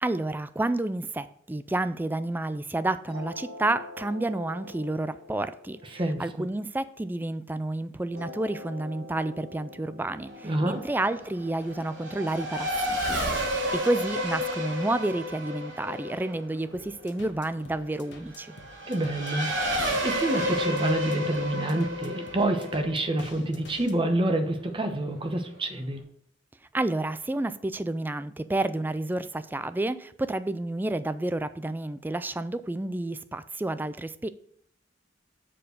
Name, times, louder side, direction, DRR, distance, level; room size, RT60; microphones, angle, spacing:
voice 1, 0.0-13.2 13.7-18.5 26.7-34.3, right 2 dB, 10° right, 13 dB, 0.3 m, -30 dB
sound 1, 3.1-7.5 8.1-13.1, left 2 dB, 50° right, 3.6 m, -46 dB
voice 2, 5.8-6.2 10.4-10.8 18.9-26.0, right 1 dB, 25° right, 6 dB, 1.0 m, -28 dB
Race car auto racing / Accelerating revving vroom, 10.3-24.4, equal, 80° right, 2.4 m, -32 dB
sound 2, 16.7-23.9, left 3 dB, 60° left, 1.3 m, -49 dB
7.5 x 4.5 x 6.6 m, 0.66 s
head